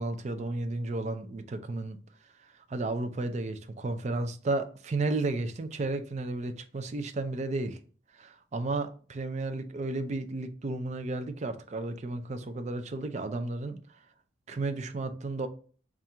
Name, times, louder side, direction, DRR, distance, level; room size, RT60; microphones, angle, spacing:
voice 1, 0.0-2.0 2.7-7.8 8.1-13.8 14.5-15.5, right 2 dB, 40° right, 0.4 m, -33 dB
4.3 x 2.4 x 3.5 m
head